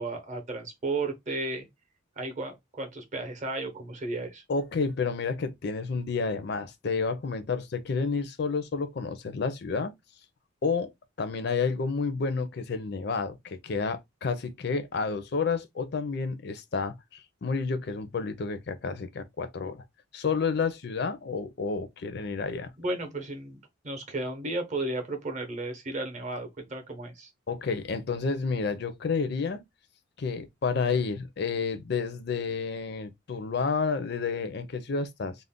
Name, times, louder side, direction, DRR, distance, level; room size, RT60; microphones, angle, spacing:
voice 1, 0.0-1.7 2.2-4.4 22.8-23.6 23.8-27.3, right 2 dB, 35° right, 0.7 m, -34 dB
voice 2, 4.5-9.9 10.6-10.9 11.2-19.8 20.1-22.7 27.5-29.6 30.2-35.4, left 4 dB, 55° left, 0.4 m, -30 dB
2.4 x 2.1 x 3.5 m
head